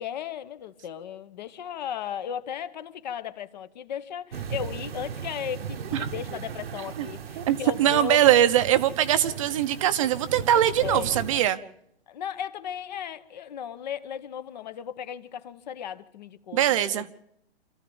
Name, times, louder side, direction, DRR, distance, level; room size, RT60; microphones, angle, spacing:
voice 1, 0.0-8.2 10.5-11.3 12.1-17.1, left 9 dB, 45° left, 1.1 m, -36 dB
sound 1, 4.3-11.5, right 7 dB, 65° right, 1.3 m, -37 dB
voice 2, 7.4-11.6 16.5-17.1, right 11 dB, 30° right, 0.9 m, -22 dB
26.5 x 14.0 x 7.1 m
hypercardioid pair, 145°, 32 cm